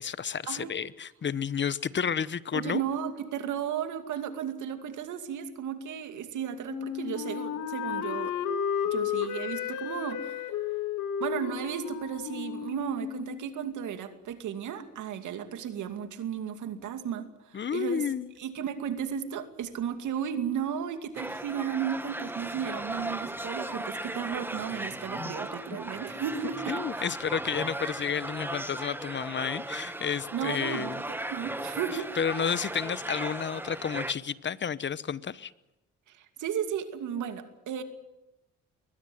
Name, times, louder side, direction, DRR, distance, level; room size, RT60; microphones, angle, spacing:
voice 1, 0.0-2.8 17.5-18.3 25.2-25.3 26.7-31.0 32.2-35.5, left 7 dB, 40° left, 0.9 m, -31 dB
voice 2, 2.5-8.4 8.8-10.4 11.2-18.0 18.4-27.0 30.3-30.9 31.3-32.2 36.1-37.8, right 8 dB, 80° right, 2.5 m, -34 dB
Wind instrument woodwind instrument, 6.7-13.5, left 8 dB, 80° left, 2.0 m, -33 dB
sound 1, 21.2-34.1, right 1 dB, 5° right, 1.3 m, -37 dB
23.0 x 19.5 x 7.9 m
cardioid pair, 90°, 30 cm